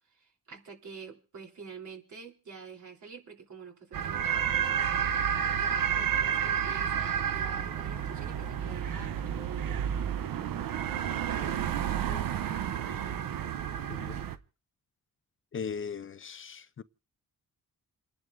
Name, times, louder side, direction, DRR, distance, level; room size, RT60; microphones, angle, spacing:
voice 1, 0.1-4.9 5.2-9.9, right 5 dB, 60° right, 3.6 m, -47 dB
sound 1, 3.9-14.4, right 8 dB, 80° right, 0.9 m, -30 dB
voice 2, 13.9-14.2 15.5-16.8, left 6 dB, 40° left, 0.5 m, -39 dB
29.0 x 10.5 x 2.6 m
cardioid pair, 105°, 34 cm